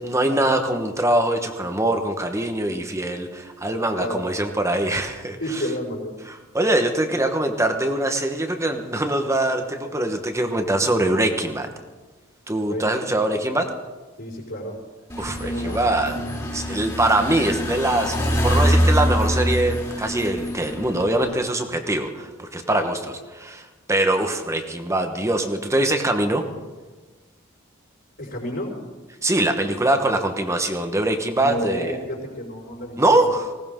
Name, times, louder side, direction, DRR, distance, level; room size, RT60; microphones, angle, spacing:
voice 1, 0.0-5.6 6.3-11.7 12.5-13.7 15.2-16.2 16.5-26.4 29.2-32.0 33.0-33.5, right 1 dB, 15° right, 6 dB, 1.2 m, -23 dB
voice 2, 5.4-6.1 12.7-13.0 14.2-14.7 15.4-15.8 28.2-28.7 31.4-33.0, left 1 dB, 60° left, -8 dB, 5.0 m, -30 dB
sound 1, 15.1-21.3, equal, 20° left, 2.6 m, -24 dB
19.5 x 18.0 x 3.8 m, 1.2 s
head